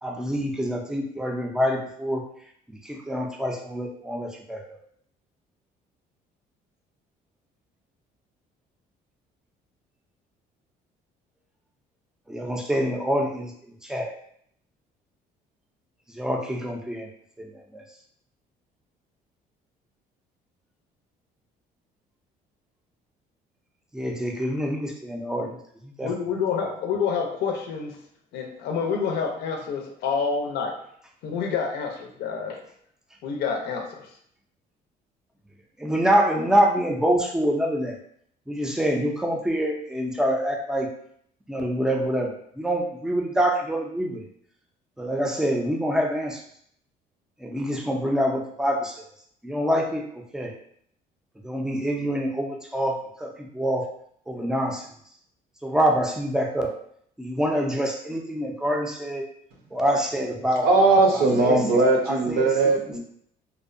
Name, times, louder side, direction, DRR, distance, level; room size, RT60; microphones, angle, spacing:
voice 1, 0.0-2.2 2.7-4.7 12.3-13.5 13.8-14.2 16.1-17.1 17.4-17.5 17.7-17.8 23.9-25.6 26.0-26.1 35.8-37.9 38.5-40.9 41.5-44.2 45.0-46.4 47.4-49.0 49.4-50.5 51.4-53.9 54.3-54.8 55.6-56.7 57.2-59.2 59.7-60.7 61.1-61.6 62.1-62.5, equal, 5° right, 1 dB, 0.4 m, -26 dB
voice 2, 26.0-28.0 28.3-30.8 31.2-32.6 33.2-34.1, left 6 dB, 80° left, 3 dB, 0.5 m, -28 dB
voice 3, 60.6-63.0, right 3 dB, 70° right, 1 dB, 0.7 m, -19 dB
2.6 x 2.0 x 2.5 m, 0.65 s
cardioid pair, 110°, 17 cm